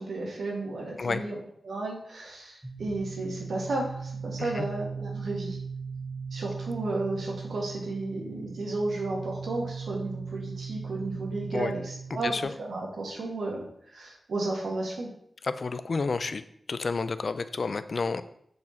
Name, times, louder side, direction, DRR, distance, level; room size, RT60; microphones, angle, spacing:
voice 1, 0.0-5.6 6.3-15.1, right 2 dB, 85° right, -1 dB, 1.7 m, -33 dB
sound 1, 2.6-12.4, right 5 dB, 10° right, 0.9 m, -38 dB
voice 2, 12.1-12.5 15.4-16.4 16.7-18.2, left 4 dB, 60° left, 12 dB, 0.4 m, -30 dB
6.7 x 4.1 x 4.2 m, 0.68 s
wide cardioid pair, 75°, 0 cm